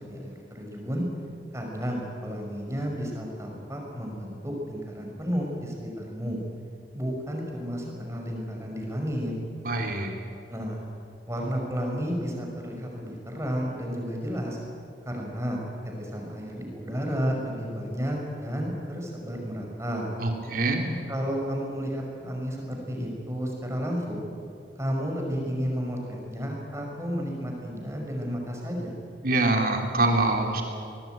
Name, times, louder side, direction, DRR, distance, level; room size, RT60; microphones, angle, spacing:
voice 1, 0.1-1.0 1.5-6.4 6.9-9.3 10.5-10.8 11.3-14.6 15.1-15.6 16.0-20.1 21.1-24.2 24.8-29.0, equal, 15° right, 0 dB, 5.3 m, -32 dB
voice 2, 9.6-10.2 20.2-20.9 29.2-30.6, right 2 dB, 50° right, 2 dB, 3.7 m, -25 dB
25.0 x 19.5 x 9.1 m, 2.5 s
head